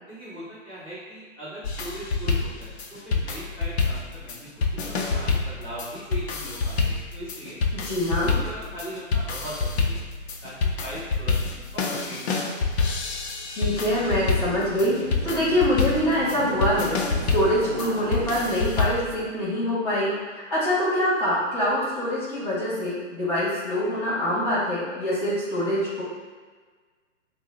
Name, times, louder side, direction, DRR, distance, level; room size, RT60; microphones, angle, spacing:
voice 1, 0.1-7.6 8.1-10.1 10.4-12.6, right 1 dB, 5° right, -20 dB, 1.3 m, -39 dB
sound 1, 1.6-19.1, left 4 dB, 55° left, 0.5 m, -27 dB
voice 2, 7.7-8.3 13.5-17.0 17.3-26.0, equal, 30° left, -11 dB, 1.5 m, -25 dB
sound 2, 13.6-18.6, right 1 dB, 45° right, 0.5 m, -38 dB
3.7 x 2.1 x 3.6 m, 1.4 s
hypercardioid pair, 165°, 38 cm